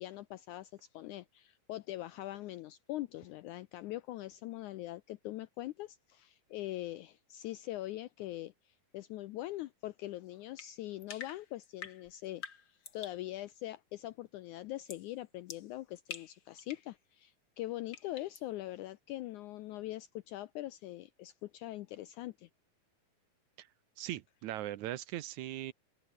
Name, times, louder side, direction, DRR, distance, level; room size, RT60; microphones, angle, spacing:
voice 1, 0.0-12.4 12.7-22.5, left 15 dB, 80° left, 1.8 m, -42 dB
sound 1, 10.6-13.3 14.9-15.1 15.5-16.9 17.9-18.5, left 6 dB, 40° left, 2.2 m, -48 dB
voice 2, 24.0-25.7, right 14 dB, 70° right, 2.0 m, -39 dB
omnidirectional pair, 4.1 m